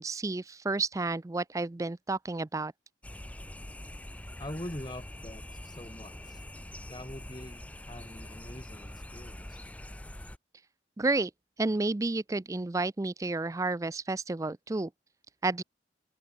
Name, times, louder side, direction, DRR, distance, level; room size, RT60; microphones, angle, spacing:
voice 1, 0.0-2.7 11.0-11.3 11.6-14.9 15.4-15.6, right 3 dB, 15° right, 0.4 m, -31 dB
sound 1, 3.0-10.4, left 1 dB, 10° left, 1.0 m, -44 dB
voice 2, 4.4-6.5 6.8-9.6, left 1 dB, 25° left, 2.3 m, -43 dB
open air
head